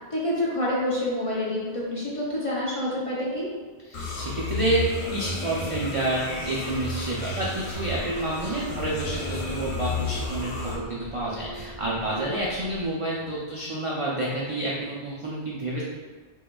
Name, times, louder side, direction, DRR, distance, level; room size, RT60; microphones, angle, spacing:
voice 1, 0.1-3.5, left 1 dB, 40° left, -6 dB, 0.5 m, -27 dB
sound 1, 3.9-10.8, left 3 dB, 85° left, 0.9 m, -32 dB
voice 2, 3.9-15.8, right 2 dB, 60° right, -5 dB, 0.3 m, -29 dB
sound 2, 7.7-12.9, equal, 60° left, 1.0 m, -42 dB
4.6 x 2.2 x 2.2 m, 1.4 s
omnidirectional pair, 1.1 m